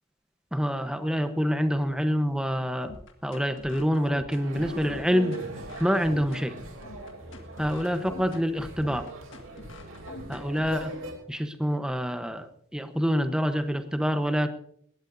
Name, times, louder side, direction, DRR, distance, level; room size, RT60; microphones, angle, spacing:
voice 1, 0.5-2.9 3.2-5.4 5.8-6.5 7.6-9.0 10.3-10.9 11.3-14.5, equal, 5° right, 8 dB, 0.9 m, -26 dB
sound 1, 2.8-10.8, left 2 dB, 60° left, 1.7 m, -44 dB
sound 2, 4.3-11.1, right 2 dB, 70° right, 3.0 m, -41 dB
20.5 x 17.0 x 2.7 m, 0.65 s
head